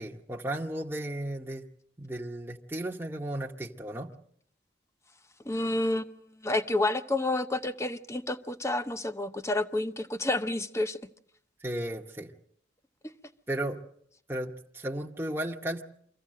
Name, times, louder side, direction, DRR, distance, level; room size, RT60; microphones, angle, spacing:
voice 1, 0.0-1.6 2.0-4.1 11.6-12.3 13.5-13.8 14.3-15.8, right 1 dB, 15° right, 0.9 m, -34 dB
voice 2, 5.5-6.1 6.4-11.0, left 2 dB, 15° left, 0.8 m, -29 dB
24.5 x 15.5 x 7.5 m
head